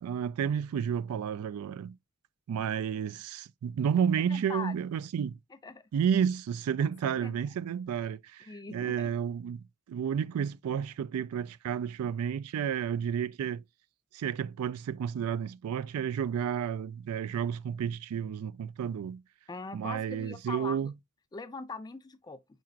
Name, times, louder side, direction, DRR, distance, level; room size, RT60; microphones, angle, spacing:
voice 1, 0.0-2.0 2.5-5.4 5.9-13.6 14.1-19.2 19.7-20.9, right 8 dB, 90° right, 0.3 m, -31 dB
voice 2, 4.3-4.7 5.6-5.8 6.8-7.3 8.5-9.1 19.5-20.9 21.3-22.4, left 4 dB, 20° left, 0.3 m, -41 dB
4.8 x 4.4 x 2.4 m
head